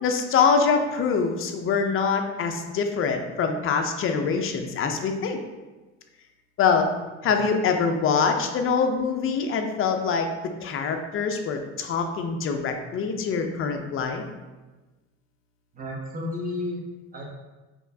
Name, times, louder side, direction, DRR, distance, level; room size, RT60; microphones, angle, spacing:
voice 1, 0.0-5.4 6.6-6.9 7.2-10.3 10.6-14.2, left 5 dB, 40° left, 5 dB, 0.5 m, -24 dB
voice 2, 7.2-7.6 15.7-16.8 17.1-17.2, left 2 dB, 25° right, -2 dB, 1.0 m, -32 dB
4.6 x 3.0 x 2.7 m, 1.2 s
cardioid pair, 120°, 32 cm